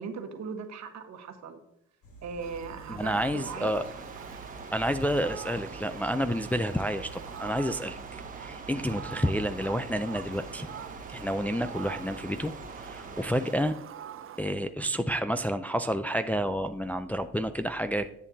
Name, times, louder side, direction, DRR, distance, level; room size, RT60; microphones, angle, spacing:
voice 1, 0.0-1.6 2.2-3.8, right 5 dB, 65° right, 6 dB, 1.4 m, -38 dB
sound 1, 2.0-13.1, right 2 dB, 80° left, 3.6 m, -50 dB
Fowl, 2.4-14.4, right 9 dB, 45° right, 0.6 m, -45 dB
voice 2, 2.9-3.8 4.7-10.7 11.1-13.8 14.4-18.1, equal, 5° left, 8 dB, 0.4 m, -30 dB
sound 2, 3.4-13.6, right 4 dB, 25° right, 1.2 m, -45 dB
10.5 x 8.5 x 2.8 m, 0.77 s
cardioid pair, 90°, 30 cm